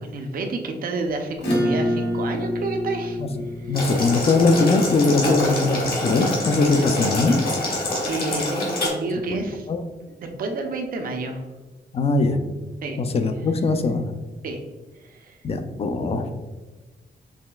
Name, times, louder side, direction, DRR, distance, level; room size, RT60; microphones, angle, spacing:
voice 1, 0.0-3.2 3.5-3.8 8.1-9.7 10.1-11.4 12.8-13.0 14.4-14.6 15.0-15.4, right 3 dB, 55° right, 4 dB, 0.5 m, -29 dB
Acoustic guitar / Strum, 1.4-6.3, left 1 dB, 85° left, 1.2 m, -28 dB
Boiling, 3.7-8.9, left 1 dB, 60° left, 1.3 m, -26 dB
voice 2, 3.7-7.4 9.7-9.8 11.9-12.4 13.0-14.1 15.4-16.4, left 3 dB, 35° left, 7 dB, 0.4 m, -21 dB
4.8 x 3.1 x 2.2 m, 1.2 s
wide cardioid pair, 170°, 17 cm